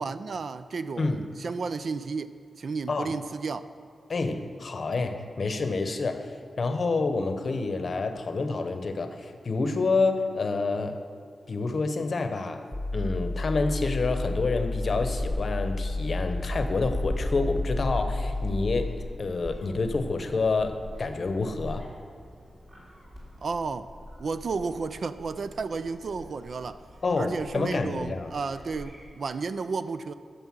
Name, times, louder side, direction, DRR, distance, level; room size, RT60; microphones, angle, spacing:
voice 1, 0.0-3.6 23.4-23.9 24.2-26.8 27.2-30.1, right 4 dB, 60° right, 0.4 m, -32 dB
voice 2, 4.1-6.3 6.6-11.0 11.5-12.7 12.9-21.9 27.0-28.3, left 3 dB, 50° left, 0.8 m, -28 dB
sound 1, 12.7-18.9, left 2 dB, ahead, 1.4 m, -31 dB
Gull seagull, 14.5-29.0, equal, 30° right, 3.0 m, -41 dB
9.5 x 6.8 x 7.5 m
wide cardioid pair, 145°, 0 cm